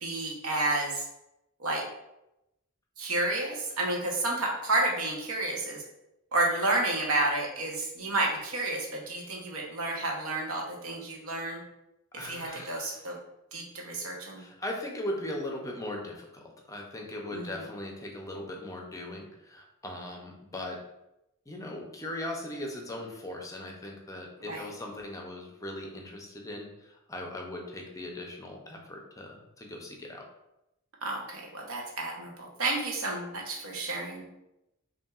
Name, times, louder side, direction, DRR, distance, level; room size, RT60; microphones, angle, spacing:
voice 1, 0.0-1.1 1.6-1.8 3.0-5.8 6.3-11.6 12.1-13.2 13.5-14.4 17.3-17.7 24.4-24.7 31.0-34.2, right 2 dB, 85° right, -1 dB, 1.0 m, -31 dB
voice 2, 12.1-13.1 14.3-20.8 21.5-30.2, left 1 dB, 15° left, 1 dB, 0.6 m, -39 dB
5.6 x 2.7 x 2.4 m, 0.89 s
head